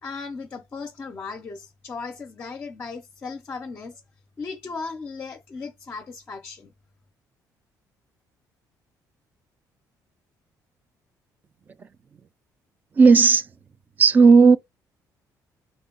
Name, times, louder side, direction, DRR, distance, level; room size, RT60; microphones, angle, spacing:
voice 1, 0.0-4.0 4.4-6.7, left 4 dB, 25° left, 0.6 m, -36 dB
voice 2, 13.0-13.5 14.0-14.6, right 5 dB, 25° right, 0.3 m, -13 dB
4.0 x 2.2 x 3.6 m
cardioid pair, 170°, 7 cm